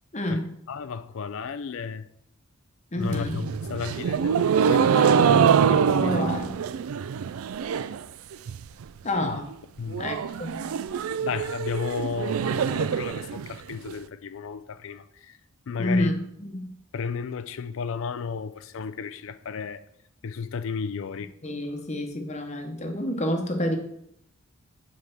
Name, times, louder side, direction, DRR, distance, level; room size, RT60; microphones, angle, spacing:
voice 1, 0.1-0.5 2.9-3.4 5.6-6.6 9.0-9.5 10.0-10.7 15.8-16.7 21.4-23.8, left 1 dB, 30° left, 0.9 m, -29 dB
voice 2, 0.7-2.1 3.0-6.1 9.2-9.4 9.8-10.1 11.2-15.4 15.7-16.1 16.9-19.8 20.2-21.3, left 5 dB, 60° left, 0.4 m, -33 dB
sound 1, 3.0-8.0 8.3-8.8 9.2-9.3 9.5-9.6 9.9-13.9, right 7 dB, 75° right, 0.3 m, -24 dB
5.4 x 4.8 x 5.9 m
head